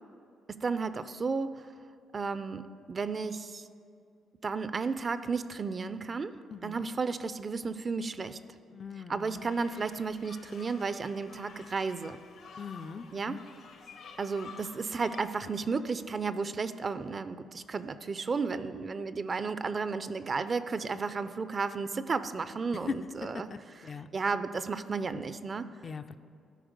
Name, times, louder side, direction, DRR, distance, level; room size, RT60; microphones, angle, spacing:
voice 1, 0.5-1.7 2.1-3.7 4.4-8.4 9.1-12.2 13.1-13.4 14.2-23.5 24.1-25.7, right 4 dB, 35° right, 13 dB, 0.4 m, -33 dB
voice 2, 6.5-6.9 8.7-9.5 12.6-13.5 22.9-23.0 23.3-24.1 25.8-26.2, left 5 dB, 45° left, 10 dB, 0.3 m, -40 dB
sound 1, 9.5-15.2, left 5 dB, 75° left, 0.9 m, -51 dB
12.5 x 4.6 x 5.1 m, 2.5 s
cardioid pair, 90°, 0 cm